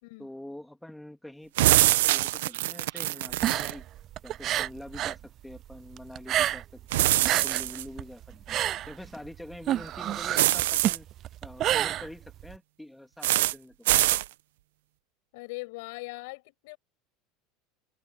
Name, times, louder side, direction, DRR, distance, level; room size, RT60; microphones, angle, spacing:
voice 1, 0.2-3.8 4.2-8.6 8.9-11.1 11.4-13.9, left 1 dB, 5° left, 3.1 m, -45 dB
sound 1, 1.6-3.7 6.9-7.8 10.3-11.0 13.2-13.5 13.9-14.2, right 16 dB, 80° right, 0.8 m, -24 dB
sound 2, 3.3-5.2 5.5-6.8 7.1-12.6, right 12 dB, 45° right, 0.4 m, -29 dB
voice 2, 15.3-16.8, left 25 dB, 70° left, 6.1 m, -40 dB
open air
hypercardioid pair, 100°, 0 cm